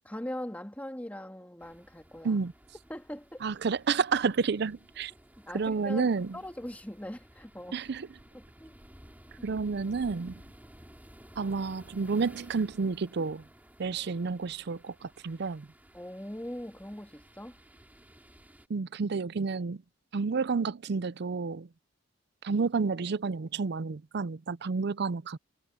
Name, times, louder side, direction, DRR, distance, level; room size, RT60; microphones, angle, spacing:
voice 1, 0.0-2.4 2.9-3.4 5.5-6.1 6.3-7.9 8.3-8.7 9.4-9.5 15.9-17.6, left 1 dB, 10° left, 2.5 m, -41 dB
sound 1, 1.6-18.7, equal, 10° right, 3.1 m, -55 dB
voice 2, 3.4-5.1 5.5-6.4 7.7-8.1 9.4-10.3 11.4-13.4 13.8-15.7 18.7-19.8 20.1-21.7 22.4-25.4, right 4 dB, 60° right, 0.5 m, -30 dB
head